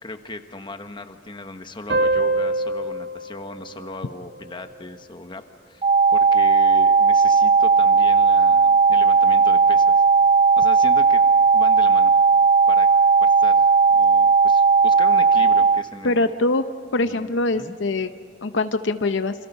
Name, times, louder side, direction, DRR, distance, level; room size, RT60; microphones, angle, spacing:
voice 1, 0.0-10.0 10.6-12.1 12.7-12.9 13.2-16.3 17.0-17.8, left 2 dB, 25° left, 7 dB, 1.2 m, -38 dB
sound 1, 1.9-5.0, right 2 dB, 65° right, 1.7 m, -26 dB
sound 2, 5.8-15.8, right 5 dB, 30° right, 0.5 m, -16 dB
voice 2, 16.0-16.6 16.9-18.1 18.4-19.3, left 2 dB, 65° left, 10 dB, 0.7 m, -23 dB
28.0 x 27.0 x 5.5 m, 2.3 s
head